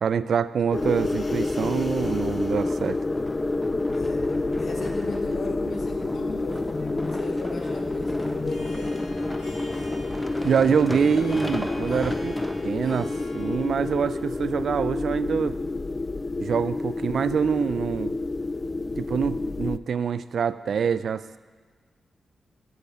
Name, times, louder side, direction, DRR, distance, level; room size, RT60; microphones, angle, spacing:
voice 1, 0.0-3.0 10.4-15.6 16.4-18.2 19.0-21.4, right 7 dB, 70° right, 14 dB, 0.3 m, -25 dB
sound 1, 0.7-19.8, left 2 dB, 35° left, 0.3 m, -29 dB
sound 2, 2.0-13.0 13.6-13.7, equal, 5° left, 0.9 m, -39 dB
voice 2, 3.9-9.1, left 3 dB, 70° left, 1 dB, 1.6 m, -36 dB
Harp, 8.4-15.6, left 1 dB, 90° left, 3.1 m, -47 dB
8.1 x 7.4 x 6.6 m, 1.5 s
supercardioid pair, 45°, 0 cm